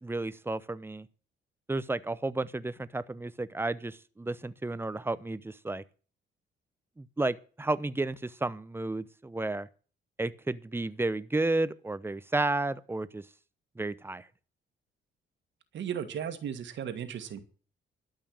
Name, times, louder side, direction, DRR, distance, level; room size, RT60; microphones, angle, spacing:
voice 1, 0.0-1.1 1.7-5.8 7.0-9.7 10.2-13.2 13.8-14.3, right 2 dB, 10° right, 0.8 m, -32 dB
voice 2, 15.7-17.4, right 9 dB, 70° right, 1.8 m, -35 dB
12.5 x 5.7 x 8.9 m
cardioid pair, 90°, 20 cm